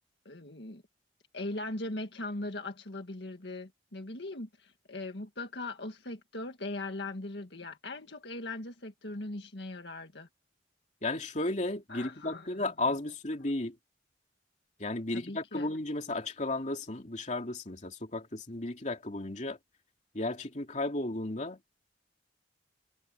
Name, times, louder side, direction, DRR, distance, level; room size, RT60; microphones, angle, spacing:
voice 1, 0.2-0.8 1.3-10.3 11.9-12.6 15.1-15.7, left 2 dB, 70° left, 1.8 m, -40 dB
voice 2, 11.0-13.7 14.8-19.6 20.1-21.6, left 2 dB, 40° left, 2.8 m, -34 dB
head